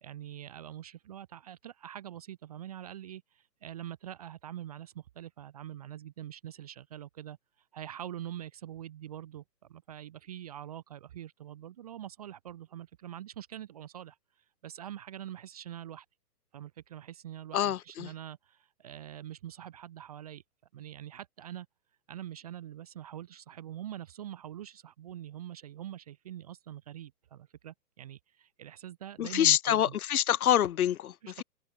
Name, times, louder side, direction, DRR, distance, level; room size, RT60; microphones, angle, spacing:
voice 1, 0.0-7.4 7.7-9.4 9.7-14.2 14.6-16.1 16.5-20.4 20.7-21.7 22.1-30.0 31.2-31.4, right 11 dB, 25° right, 0.6 m, -44 dB
voice 2, 17.5-18.1 29.2-31.4, left 11 dB, 60° left, 0.9 m, -26 dB
hypercardioid pair, 140°, 50 cm